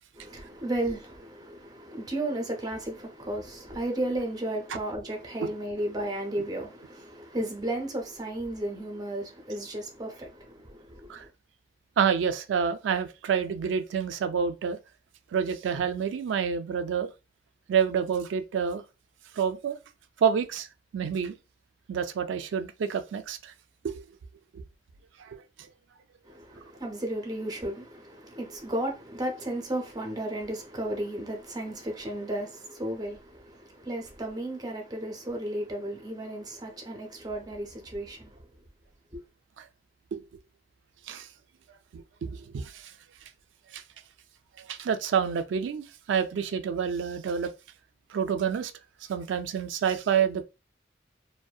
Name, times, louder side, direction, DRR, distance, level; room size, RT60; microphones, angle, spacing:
voice 1, 0.1-11.3 26.3-38.3 39.1-39.2, right 1 dB, 20° right, 0.6 m, -34 dB
voice 2, 12.0-14.8 15.3-17.1 17.7-18.8 19.4-19.8 20.2-20.7 20.9-21.3 21.9-23.5 23.8-24.0 24.5-24.6 25.2-25.7 40.1-40.2 41.1-41.3 41.9-42.7 43.7-43.8 44.6-47.5 48.1-48.7 49.1-50.4, right 7 dB, 75° right, 0.3 m, -28 dB
2.6 x 2.1 x 2.3 m
head